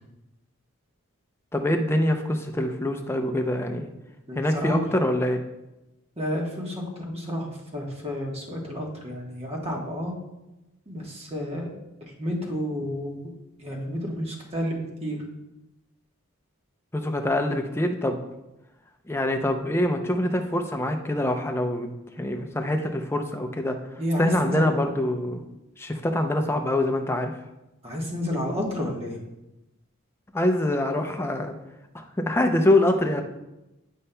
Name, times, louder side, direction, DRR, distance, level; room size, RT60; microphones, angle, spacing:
voice 1, 1.5-3.9 4.3-5.4 16.9-18.2 19.1-23.8 24.2-25.4 25.8-27.3 30.3-31.5 31.9-33.2, left 1 dB, 10° left, 5 dB, 0.5 m, -24 dB
voice 2, 4.3-4.9 6.2-10.1 10.9-11.7 12.2-13.3 13.6-15.2 24.0-25.0 27.8-29.2, equal, 30° right, -1 dB, 1.2 m, -30 dB
10.5 x 5.4 x 2.2 m, 0.96 s
head